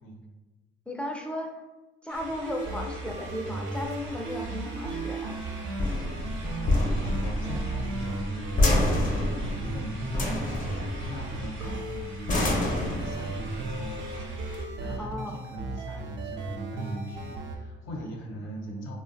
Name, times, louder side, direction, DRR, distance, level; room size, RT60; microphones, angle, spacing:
voice 1, 0.9-1.6 2.0-5.4 15.0-15.4, left 1 dB, 5° left, 2 dB, 0.3 m, -35 dB
sound 1, 2.1-14.6, right 2 dB, 85° right, 0.8 m, -47 dB
sound 2, 2.2-15.2, left 1 dB, 40° left, 0.6 m, -29 dB
sound 3, 2.3-12.1 12.4-17.6, right 3 dB, 70° right, 0.4 m, -36 dB
voice 2, 6.4-14.0 14.8-19.0, equal, 80° left, 0 dB, 0.6 m, -39 dB
2.7 x 2.1 x 2.5 m, 1.1 s
cardioid pair, 90°, 20 cm